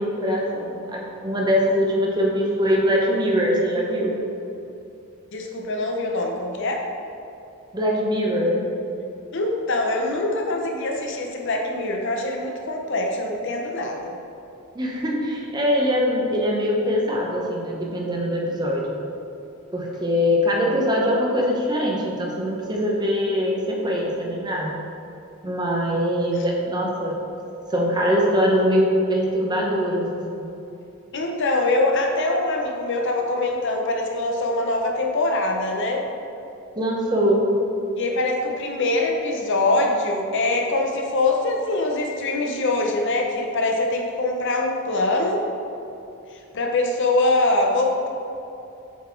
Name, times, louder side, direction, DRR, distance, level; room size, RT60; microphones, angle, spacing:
voice 1, 0.0-4.2 7.7-8.7 14.7-19.0 19.7-24.8 25.4-27.2 27.7-30.5 36.7-37.5, equal, 20° right, -2 dB, 0.8 m, -22 dB
voice 2, 5.3-6.8 9.3-14.1 31.1-36.0 38.0-45.4 46.3-48.1, left 2 dB, 55° left, 1 dB, 0.7 m, -23 dB
7.1 x 4.0 x 4.4 m, 2.7 s
head